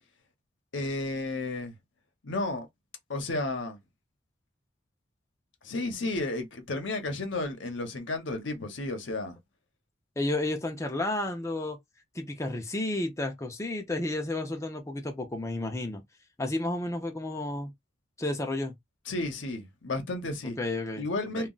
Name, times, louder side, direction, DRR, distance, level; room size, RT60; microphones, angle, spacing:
voice 1, 0.7-1.7 2.2-2.7 3.1-3.8 5.6-9.4 19.1-20.6 20.9-21.5, left 2 dB, 75° left, 0.8 m, -32 dB
voice 2, 10.2-11.8 12.1-16.0 16.4-17.7 18.2-18.7 20.6-21.1 21.4-21.5, left 2 dB, 15° left, 0.5 m, -31 dB
2.3 x 2.0 x 3.8 m
head